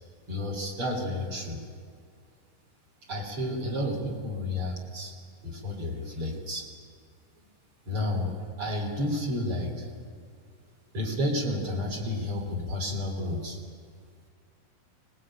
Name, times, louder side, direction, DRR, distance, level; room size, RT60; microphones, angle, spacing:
voice 1, 0.3-1.6 3.1-5.1 5.4-6.6 7.9-9.9 10.9-13.6, left 1 dB, 40° right, 0 dB, 4.1 m, -31 dB
20.5 x 20.0 x 8.9 m, 2.2 s
omnidirectional pair, 3.8 m